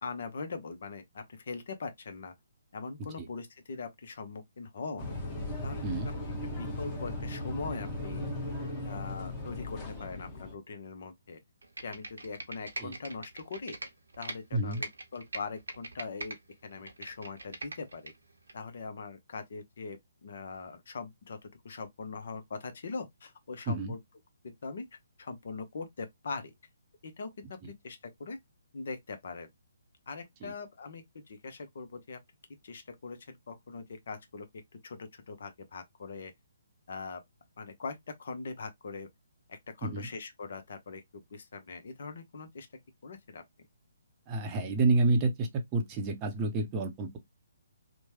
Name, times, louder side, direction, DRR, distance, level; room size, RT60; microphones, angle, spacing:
voice 1, 0.0-2.3 2.7-5.1 5.6-5.8 6.4-8.3 8.8-11.4 11.8-13.8 14.2-18.1 18.5-24.0 24.4-24.8 25.2-26.5 27.0-28.4 28.7-29.5 30.1-32.2 32.6-34.5 34.8-36.3 36.9-37.2 37.6-39.1 39.5-42.7 43.0-43.4, left 4 dB, 55° left, 0.6 m, -41 dB
sound 1, 5.0-10.5, left 1 dB, 20° left, 1.1 m, -37 dB
Computer keyboard, 11.6-14.4 14.7-16.4 16.7-18.1 18.5-18.6, right 2 dB, 70° right, 0.7 m, -41 dB
voice 2, 14.5-14.8 23.7-23.9 30.4-30.5 39.8-40.1 44.3-47.2, right 3 dB, 25° right, 0.6 m, -29 dB
3.0 x 2.2 x 2.7 m
figure-of-eight pair, 135°, 0 cm